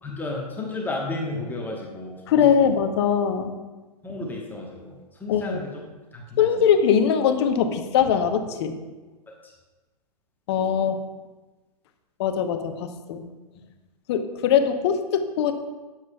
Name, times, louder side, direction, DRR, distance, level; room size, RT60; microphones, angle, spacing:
voice 1, 0.0-2.8 4.0-5.7 6.1-6.5 9.4-9.5, left 2 dB, 10° left, -2 dB, 1.1 m, -33 dB
voice 2, 2.3-3.6 5.3-5.6 6.4-8.8 10.5-11.0 12.2-13.2 14.1-15.5, left 7 dB, 40° left, 8 dB, 0.9 m, -21 dB
17.5 x 7.4 x 2.3 m, 1.2 s
figure-of-eight pair, 115°, 20 cm